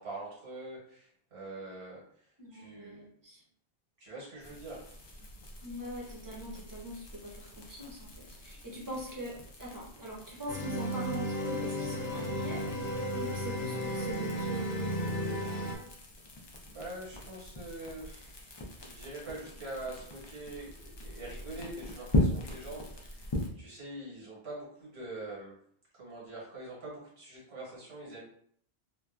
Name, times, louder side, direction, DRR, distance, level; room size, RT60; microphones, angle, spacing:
voice 1, 0.0-2.3 2.5-3.0 4.0-4.8 16.4-25.6 25.9-28.2, right 2 dB, 90° right, -5 dB, 1.4 m, -44 dB
voice 2, 2.4-3.4 5.6-15.7, equal, 25° right, -4 dB, 0.6 m, -43 dB
sound 1, 4.4-23.5, left 1 dB, 45° left, 0.3 m, -39 dB
sound 2, 10.5-15.8, equal, 70° left, 0.8 m, -34 dB
2.7 x 2.2 x 2.3 m, 0.63 s
omnidirectional pair, 1.0 m